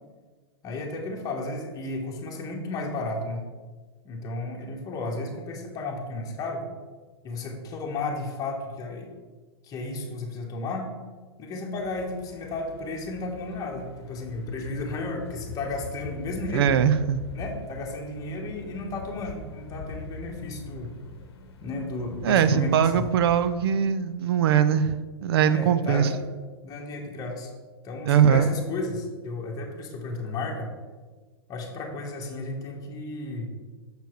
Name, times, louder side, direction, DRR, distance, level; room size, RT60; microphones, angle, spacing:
voice 1, 0.6-3.4 4.0-6.7 7.2-9.1 9.6-10.9 11.4-16.7 17.3-20.9 21.6-23.1 25.5-26.2 26.6-27.5 27.8-30.7 31.5-33.5, left 2 dB, 25° left, 0 dB, 1.4 m, -33 dB
sound 1, 11.7-23.5, left 4 dB, 65° left, 1.0 m, -42 dB
voice 2, 16.5-17.2 22.2-26.1 28.1-28.5, right 8 dB, 65° right, 13 dB, 0.5 m, -21 dB
6.7 x 4.5 x 4.6 m, 1.4 s
hypercardioid pair, 120°, 14 cm